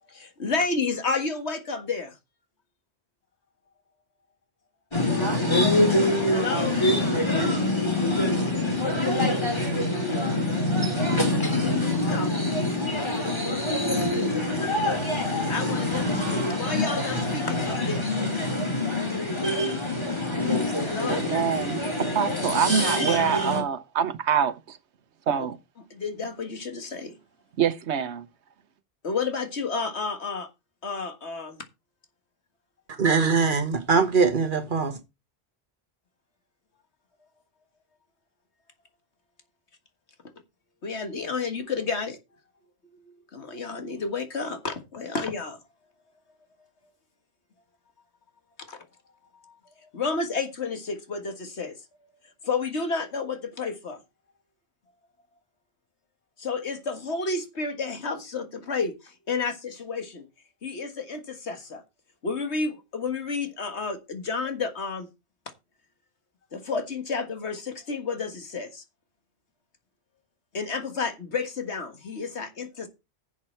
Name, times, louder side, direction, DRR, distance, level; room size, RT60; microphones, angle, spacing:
voice 1, 0.1-2.2 6.3-6.8 11.6-12.5 15.5-18.1 20.8-21.3 25.4-25.5 25.9-27.1 29.0-30.5 30.8-31.6 40.8-42.2 43.3-45.6 48.6-48.8 49.4-49.5 49.8-51.8 52.4-54.0 56.4-60.2 60.6-61.8 62.2-65.1 66.5-68.8 70.5-72.9, left 4 dB, 80° left, 1.9 m, -31 dB
sound 1, 4.9-23.6, left 1 dB, 25° left, 2.8 m, -25 dB
voice 2, 21.1-24.8 25.3-25.6 27.6-28.2, right 8 dB, 90° right, 1.2 m, -25 dB
voice 3, 32.9-35.0, right 5 dB, 50° right, 1.4 m, -22 dB
11.0 x 7.3 x 4.5 m
omnidirectional pair, 1.1 m